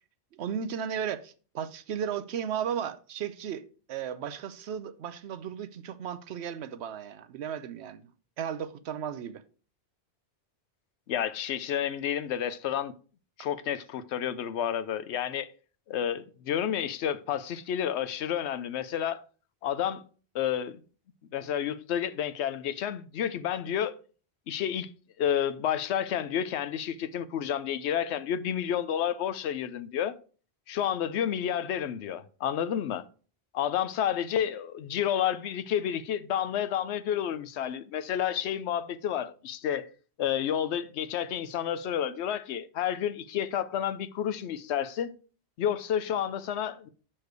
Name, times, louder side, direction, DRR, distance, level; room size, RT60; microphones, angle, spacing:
voice 1, 0.3-8.1 8.4-9.4, right 8 dB, 85° right, 0.9 m, -35 dB
voice 2, 11.1-12.9 13.4-15.5 15.9-19.2 19.6-20.0 20.3-20.8 21.3-23.9 24.5-24.9 25.2-30.1 30.7-33.0 33.5-39.9 40.2-45.1 45.6-46.9, left 9 dB, 85° left, 0.9 m, -30 dB
6.6 x 4.4 x 4.7 m
omnidirectional pair, 1.1 m